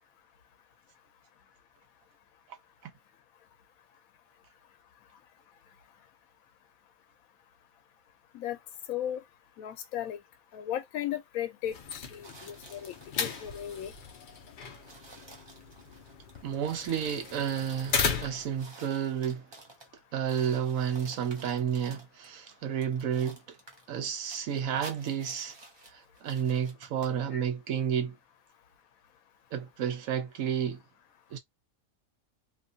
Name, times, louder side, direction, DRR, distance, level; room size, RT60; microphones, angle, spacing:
voice 1, 8.9-9.2 9.6-10.2 10.5-13.9 27.3-27.4, left 11 dB, 85° left, 1.0 m, -36 dB
sound 1, 11.6-18.6, left 6 dB, 60° left, 0.5 m, -36 dB
sound 2, 12.2-13.9 14.3-14.4 14.7-20.0 20.3-22.3 22.8-27.2, right 2 dB, 30° right, 0.5 m, -52 dB
voice 2, 16.4-19.5 20.1-23.6 23.9-25.6 25.9-28.2 29.5-30.8 31.3-31.4, right 8 dB, 75° right, 1.1 m, -31 dB
2.8 x 2.3 x 2.6 m
omnidirectional pair, 1.4 m